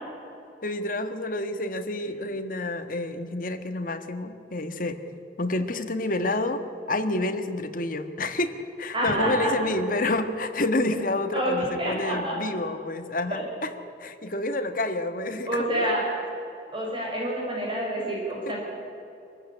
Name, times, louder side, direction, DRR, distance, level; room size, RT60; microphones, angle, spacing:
voice 1, 0.6-5.0 5.4-6.6 6.9-13.4 14.0-15.9, left 2 dB, 50° left, 8 dB, 1.5 m, -29 dB
voice 2, 8.9-9.6 11.3-12.4 13.3-13.4 15.5-16.0 16.7-18.6, right 1 dB, 30° right, -3 dB, 5.7 m, -27 dB
24.5 x 14.5 x 9.9 m, 2.8 s
head